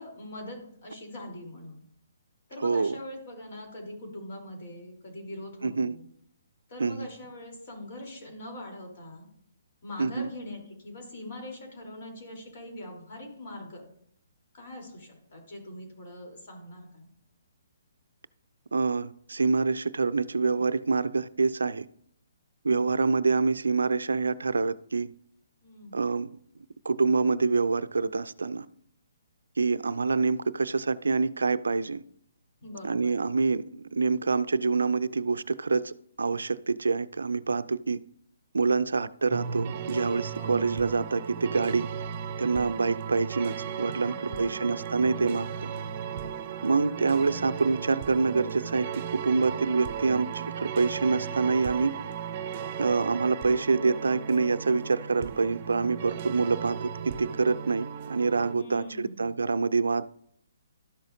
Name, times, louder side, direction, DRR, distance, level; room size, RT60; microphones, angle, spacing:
voice 1, 0.0-1.7 2.5-6.0 6.7-9.3 9.8-13.8 14.5-17.1 25.6-26.0 32.6-33.2 40.4-40.8 44.1-44.8 58.5-59.3, left 1 dB, 50° left, 0 dB, 3.6 m, -42 dB
voice 2, 2.6-3.0 5.6-5.9 6.8-7.1 10.0-10.3 18.7-21.9 22.6-25.1 25.9-26.3 26.8-28.7 29.6-32.0 32.8-38.0 38.5-41.9 42.4-45.7 46.6-48.9 49.1-51.9 52.8-60.1, right 4 dB, 80° right, 15 dB, 0.4 m, -26 dB
sound 1, 39.3-58.5, right 8 dB, 40° right, 0.6 m, -36 dB
12.5 x 6.3 x 2.7 m, 0.67 s
hypercardioid pair, 140°, 0 cm